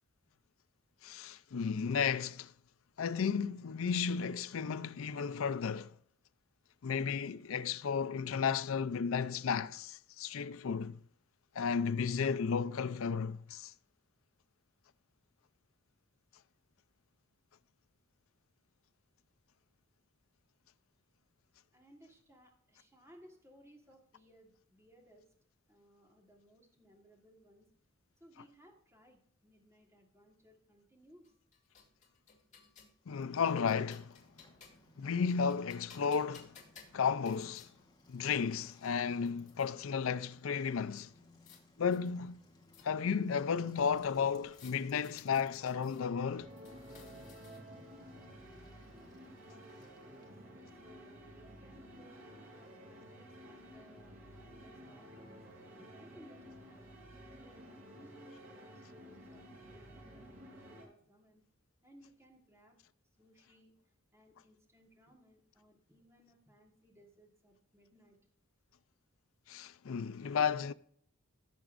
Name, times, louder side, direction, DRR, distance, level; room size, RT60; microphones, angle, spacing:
voice 1, 1.0-2.5 3.0-5.9 6.8-11.0 11.5-13.7 33.1-34.2 35.0-36.5 36.9-37.7 38.1-41.1 41.8-42.4 42.8-46.5 69.5-70.7, left 6 dB, 75° left, 0.5 m, -33 dB
voice 2, 21.7-25.3 25.7-27.7 28.2-31.3 49.5-50.4 50.7-55.4 55.8-57.0 57.4-61.4 61.8-62.8 63.2-63.7 64.1-68.2, equal, 15° right, 1.4 m, -62 dB
sound 1, 31.2-33.0 33.5-34.9 35.3-37.7 38.5-38.6 38.8-39.7 41.0-41.6 41.9-43.2 44.5-46.0 46.5-47.8, left 6 dB, 35° left, 2.4 m, -60 dB
Bicycle, 33.0-50.6, left 2 dB, 20° left, 1.3 m, -64 dB
sound 2, 46.2-60.9, equal, 85° right, 3.5 m, -53 dB
17.0 x 7.0 x 2.5 m
head